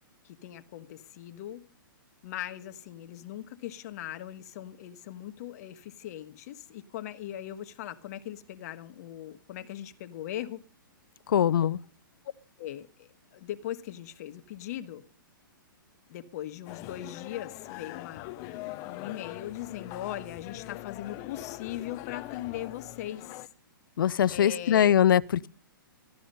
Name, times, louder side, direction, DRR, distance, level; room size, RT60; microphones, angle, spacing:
voice 1, 0.2-1.6 2.2-10.6 12.6-15.0 16.1-23.5 24.3-25.0, left 12 dB, 45° left, 1.4 m, -40 dB
voice 2, 11.3-11.8 24.0-25.5, left 10 dB, 70° left, 0.6 m, -22 dB
sound 1, 16.7-23.5, left 16 dB, 30° left, 0.6 m, -42 dB
15.5 x 12.0 x 5.5 m
hypercardioid pair, 145°, 12 cm